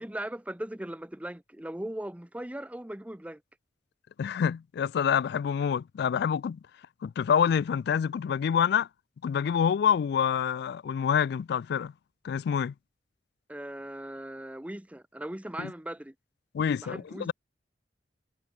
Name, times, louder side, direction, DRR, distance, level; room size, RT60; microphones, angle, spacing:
voice 1, 0.0-3.4 13.5-16.1 16.8-17.3, right 1 dB, 10° right, 0.7 m, -38 dB
voice 2, 4.2-6.6 7.0-8.9 9.2-11.9 12.2-12.7 15.6-15.7 16.5-17.3, left 7 dB, 65° left, 0.3 m, -27 dB
head